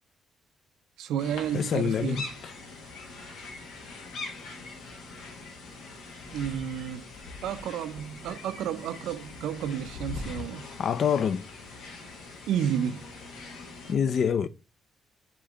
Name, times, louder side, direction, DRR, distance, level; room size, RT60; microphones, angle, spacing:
voice 1, 1.0-2.3 6.3-7.0 7.4-10.6 12.5-13.0, right 9 dB, 85° right, 0.4 m, -31 dB
sound 1, 1.2-13.9, left 3 dB, 85° left, 1.1 m, -42 dB
voice 2, 1.5-2.2 10.8-11.4 13.9-14.5, left 7 dB, 60° left, 0.3 m, -26 dB
5.0 x 2.9 x 3.4 m
cardioid pair, 90°, 0 cm